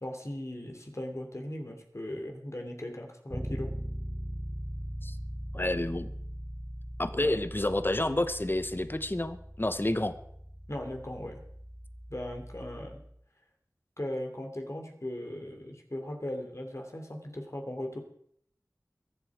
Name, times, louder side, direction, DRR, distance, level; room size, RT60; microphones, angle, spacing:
voice 1, 0.0-3.7 7.2-7.4 10.7-11.4 12.1-13.0 14.0-18.0, left 1 dB, 50° left, 3 dB, 2.9 m, -38 dB
Bass guitar, 3.3-13.1, equal, 5° right, 0.7 m, -40 dB
voice 2, 5.5-6.1 7.0-10.2, left 1 dB, 35° left, 11 dB, 1.0 m, -29 dB
23.0 x 7.9 x 4.8 m, 0.67 s
wide cardioid pair, 40°, 6 cm